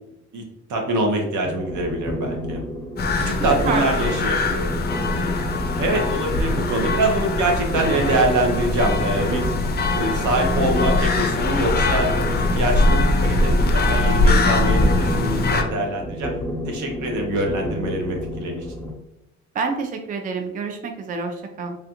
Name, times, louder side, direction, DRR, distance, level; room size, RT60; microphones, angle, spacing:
voice 1, 0.7-2.6 3.1-5.4 5.8-9.5 9.9-16.3 16.7-18.7, right 1 dB, 75° right, 2 dB, 0.8 m, -24 dB
sound 1, 1.4-18.9, equal, 10° left, 0.8 m, -31 dB
sound 2, 3.0-15.6, left 2 dB, 35° left, 0.5 m, -21 dB
voice 2, 3.6-4.3 19.5-21.8, right 4 dB, 30° right, 5 dB, 0.4 m, -28 dB
3.2 x 2.3 x 2.8 m, 0.88 s
cardioid pair, 90°, 30 cm